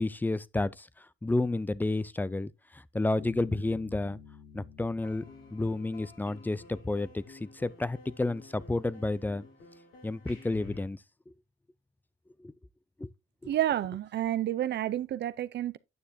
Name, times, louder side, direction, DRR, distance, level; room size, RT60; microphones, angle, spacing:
voice 1, 0.0-4.2 4.5-5.2 5.5-9.5 10.0-11.0 12.4-12.5 13.0-13.1 13.4-13.5, left 2 dB, 10° left, 0.4 m, -31 dB
Bass guitar, 3.2-6.9, left 7 dB, 65° left, 3.2 m, -51 dB
sound 1, 5.0-10.8, left 3 dB, 80° left, 3.0 m, -52 dB
voice 2, 13.5-15.8, right 12 dB, 60° right, 0.6 m, -30 dB
9.4 x 6.5 x 2.7 m
cardioid pair, 90°, 20 cm